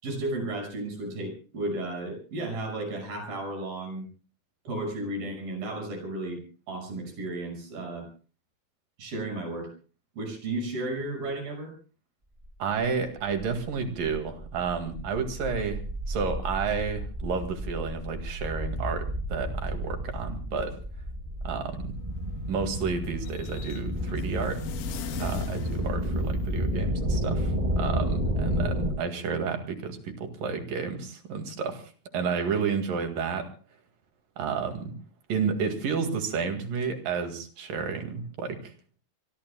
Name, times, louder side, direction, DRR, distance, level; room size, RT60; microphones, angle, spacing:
voice 1, 0.0-4.1 4.6-6.4 6.7-8.1 9.0-9.7 10.2-11.7, right 2 dB, 85° right, 4 dB, 7.7 m, -33 dB
sound 1, 12.4-12.5 12.8-28.9, equal, 10° right, 3.5 m, -31 dB
voice 2, 12.6-20.8 21.4-22.0 22.5-24.7 25.2-33.5 34.4-35.0 35.3-38.7, right 5 dB, 70° right, 6 dB, 3.7 m, -31 dB
sound 2, 21.8-26.8, left 9 dB, 70° left, 2.7 m, -41 dB
26.5 x 23.0 x 2.3 m, 0.37 s
omnidirectional pair, 4.1 m